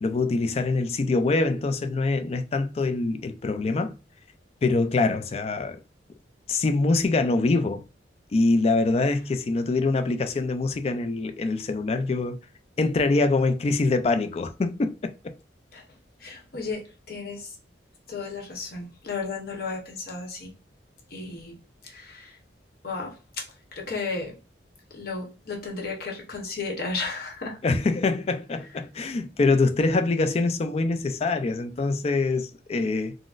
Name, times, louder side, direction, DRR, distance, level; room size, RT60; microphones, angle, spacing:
voice 1, 0.0-3.9 4.6-5.8 6.5-7.8 8.3-12.4 12.8-15.1 27.6-33.2, left 3 dB, 35° left, 0.3 m, -24 dB
voice 2, 16.2-17.6 18.1-20.5 21.1-21.6 21.8-22.4 22.8-23.5 23.7-24.4 24.9-27.6, left 4 dB, 55° left, 0.9 m, -34 dB
3.9 x 2.0 x 2.4 m
head